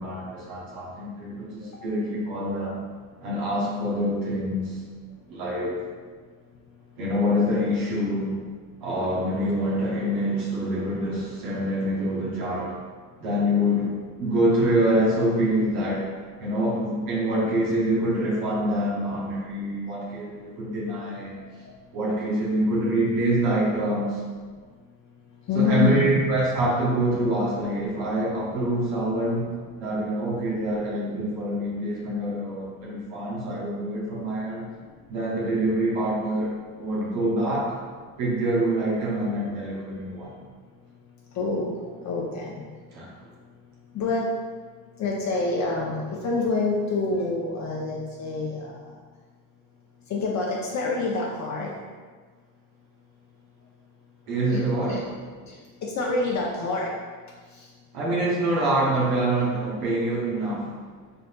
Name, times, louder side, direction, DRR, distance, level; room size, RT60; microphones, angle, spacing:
voice 1, 0.0-2.8 3.2-4.8 5.3-5.8 7.0-8.4 8.8-12.7 13.2-16.1 16.4-21.4 21.9-24.2 25.5-29.5 29.8-34.7 35.1-37.8 38.2-40.4 42.9-43.3 54.3-55.0 57.9-60.8, right 1 dB, 90° right, -5 dB, 1.0 m, -25 dB
voice 2, 21.3-21.7 25.5-26.1 41.3-42.6 43.9-44.3 45.0-48.8 50.1-51.8 54.5-55.0 55.5-55.6 55.8-56.9 57.5-57.7, left 3 dB, 45° left, -3 dB, 0.6 m, -27 dB
3.8 x 3.4 x 2.3 m, 1.5 s
supercardioid pair, 80°, 40 cm